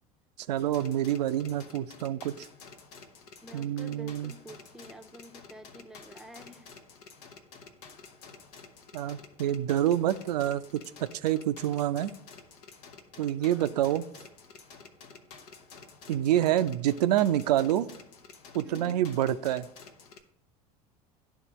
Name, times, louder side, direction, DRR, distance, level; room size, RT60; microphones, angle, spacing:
voice 1, 0.5-2.5 3.5-4.3 8.9-10.8 11.2-12.1 13.2-14.0 16.1-17.9 18.5-19.7, right 12 dB, 85° right, 13 dB, 0.4 m, -27 dB
sound 1, 0.6-20.2, left 5 dB, 70° left, 0.9 m, -51 dB
voice 2, 3.4-6.7 13.4-13.9 18.6-19.1, equal, 5° right, 6 dB, 0.7 m, -48 dB
11.0 x 3.8 x 3.0 m, 0.75 s
hypercardioid pair, 80°, 20 cm